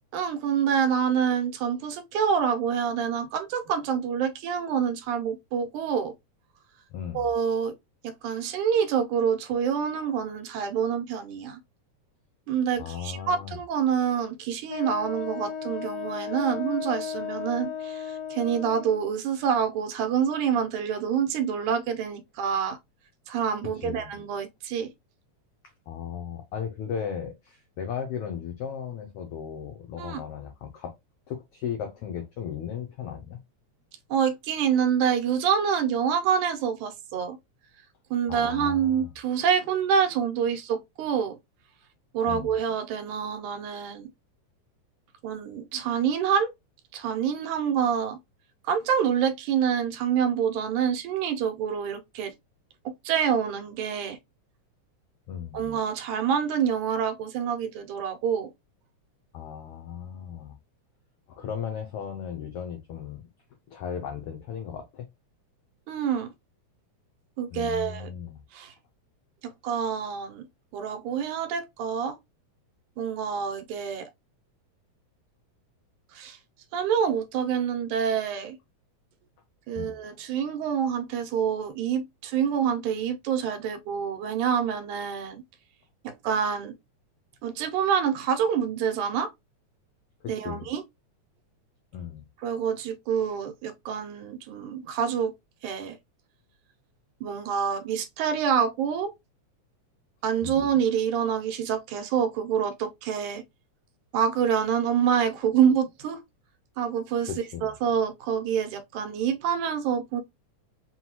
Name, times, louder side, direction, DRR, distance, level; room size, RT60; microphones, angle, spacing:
voice 1, 0.1-6.1 7.1-7.7 8.0-11.6 12.5-22.8 23.3-24.9 30.0-30.2 34.1-37.4 38.1-41.4 42.1-44.1 45.2-46.5 46.9-48.2 48.6-52.3 53.1-54.2 55.5-58.5 65.9-66.3 67.4-68.1 68.5-68.7 69.4-70.5 70.7-72.2 73.0-74.1 76.1-76.4 76.7-78.6 79.7-85.4 86.0-86.7 87.4-89.3 90.3-90.8 92.4-95.3 95.6-96.0 97.2-99.1 100.2-103.4 104.1-106.2 106.8-107.3 107.6-110.2, right 7 dB, 85° right, 2.3 m, -27 dB
voice 2, 6.9-7.3 12.8-13.6 23.7-24.1 25.9-30.9 31.3-33.4 38.3-39.1 42.3-42.5 55.3-55.6 59.3-60.5 61.3-63.2 63.7-65.1 67.5-68.4 79.7-79.9 90.2-90.6 91.9-92.2 100.4-100.7 107.3-107.7, left 8 dB, 85° left, 1.3 m, -36 dB
Wind instrument woodwind instrument, 14.7-19.1, left 7 dB, 60° left, 2.4 m, -35 dB
5.6 x 2.3 x 2.9 m
omnidirectional pair, 3.4 m